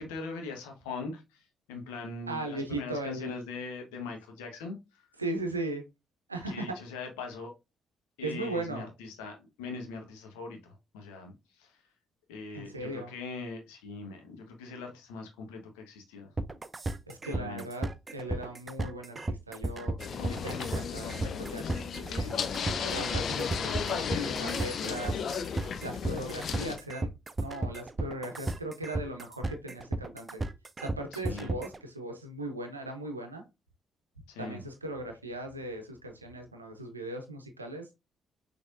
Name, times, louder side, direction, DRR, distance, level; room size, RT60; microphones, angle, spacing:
voice 1, 0.0-5.1 6.5-7.5 8.2-11.8 12.3-16.3 17.3-17.6 31.1-31.6 34.3-34.6, left 4 dB, 70° left, 1.2 m, -41 dB
voice 2, 2.3-3.4 5.2-5.8 6.3-6.8 8.2-8.9 12.5-13.1 17.1-22.3 22.6-25.2 25.8-27.1 27.4-30.4 30.8-33.4 34.4-37.9, right 2 dB, 85° right, 0.6 m, -38 dB
sound 1, 16.4-31.8, right 2 dB, 30° right, 0.5 m, -34 dB
sound 2, 20.0-26.8, left 6 dB, 50° left, 0.6 m, -34 dB
6.1 x 3.4 x 2.5 m
figure-of-eight pair, 40°, 0 cm